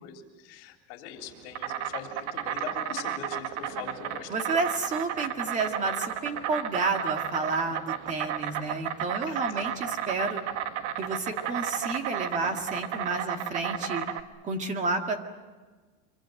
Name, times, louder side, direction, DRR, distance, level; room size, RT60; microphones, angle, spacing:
voice 1, 0.0-4.5 9.3-9.7, left 8 dB, 55° left, 3 dB, 3.6 m, -42 dB
Insect, 1.2-14.2, right 10 dB, 75° right, 1.7 m, -33 dB
voice 2, 4.3-10.4 11.0-14.0 14.4-15.2, right 3 dB, 20° right, 5 dB, 1.9 m, -30 dB
25.5 x 23.5 x 7.8 m, 1.4 s
supercardioid pair, 170°, 37 cm